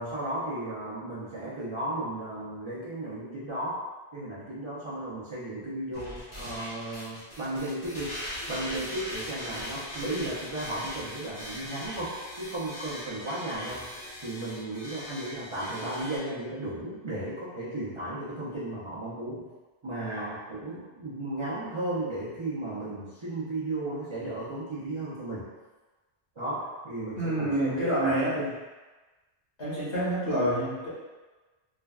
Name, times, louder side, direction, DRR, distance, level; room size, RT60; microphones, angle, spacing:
voice 1, 0.0-3.8 4.1-13.9 14.2-19.5 19.8-25.5 26.4-28.5, right 1 dB, 40° right, -11 dB, 0.5 m, -35 dB
sound 1, 5.9-16.2, equal, 25° left, 0.7 m, -40 dB
voice 2, 27.1-28.4 29.6-30.9, right 1 dB, 85° left, -9 dB, 1.5 m, -27 dB
3.4 x 2.2 x 2.3 m, 1.2 s
omnidirectional pair, 1.1 m